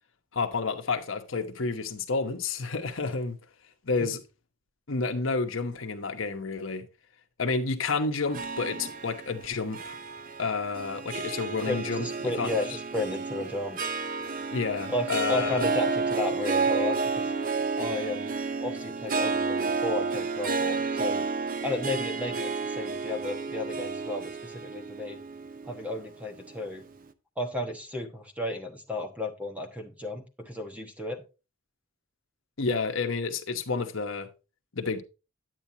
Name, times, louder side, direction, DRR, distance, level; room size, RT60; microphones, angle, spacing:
voice 1, 0.3-3.4 3.8-4.2 4.9-6.9 7.4-9.9 10.4-12.1 12.4-12.5 14.5-15.7 32.6-34.3 34.7-35.0, left 4 dB, 75° left, 1.0 m, -30 dB
Harp, 8.3-26.8, right 4 dB, 45° right, 0.6 m, -31 dB
voice 2, 11.7-13.8 14.9-17.3 17.8-18.3 18.6-21.3 21.6-25.2 25.6-26.8 27.4-31.2, left 2 dB, 5° right, 1.2 m, -33 dB
9.3 x 9.0 x 2.8 m
head